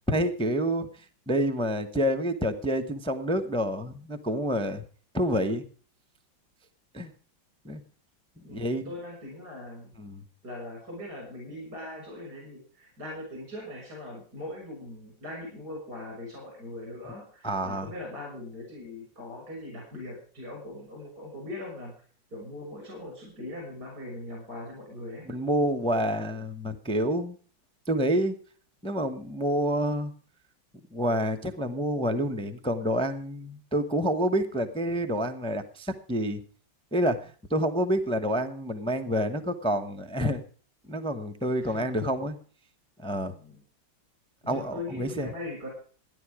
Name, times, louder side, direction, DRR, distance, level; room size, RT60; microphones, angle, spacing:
voice 1, 0.1-4.8 5.1-5.6 6.9-7.1 7.6-7.8 8.4-8.9 10.0-10.2 17.4-17.9 25.3-27.4 27.9-28.3 28.8-30.1 30.9-36.4 36.9-40.4 40.9-42.4 43.0-43.3 44.5-45.3, equal, 5° left, 8 dB, 0.6 m, -28 dB
voice 2, 8.4-9.9 10.4-21.9 22.3-25.3 41.6-41.8 43.3-43.6 44.4-45.7, left 2 dB, 55° right, -1 dB, 6.9 m, -40 dB
15.0 x 10.5 x 4.9 m, 0.43 s
omnidirectional pair, 2.1 m